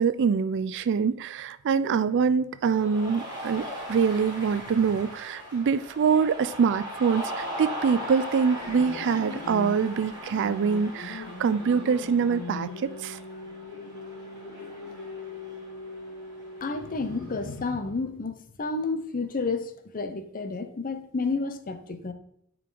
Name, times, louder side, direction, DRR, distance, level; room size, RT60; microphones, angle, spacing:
voice 1, 0.0-13.2, right 6 dB, 55° right, 15 dB, 0.4 m, -25 dB
Cheering, 2.7-17.5, equal, 20° right, 3.1 m, -40 dB
sound 1, 8.6-17.6, left 3 dB, 75° left, 0.8 m, -40 dB
voice 2, 16.6-22.1, left 3 dB, 40° left, 9 dB, 0.7 m, -31 dB
9.1 x 4.7 x 3.9 m, 0.71 s
head